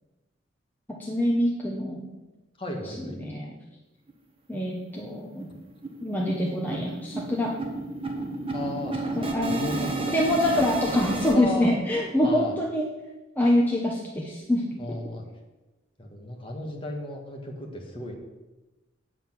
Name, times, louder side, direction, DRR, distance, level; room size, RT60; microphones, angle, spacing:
voice 1, 1.0-2.1 2.8-3.5 4.5-5.5 6.0-7.6 9.2-9.7 10.1-12.9 13.4-15.0, left 1 dB, 10° left, -3 dB, 1.0 m, -25 dB
voice 2, 2.6-3.2 8.5-8.9 9.2-10.1 10.5-10.6 11.3-11.7 12.2-12.5 14.8-15.2 16.0-18.2, left 1 dB, 25° left, 1 dB, 1.6 m, -35 dB
sound 1, 4.1-4.2 4.5-4.6 5.0-5.1 5.4-11.4, right 2 dB, 30° right, 1.3 m, -32 dB
8.8 x 7.6 x 6.0 m, 1.1 s
head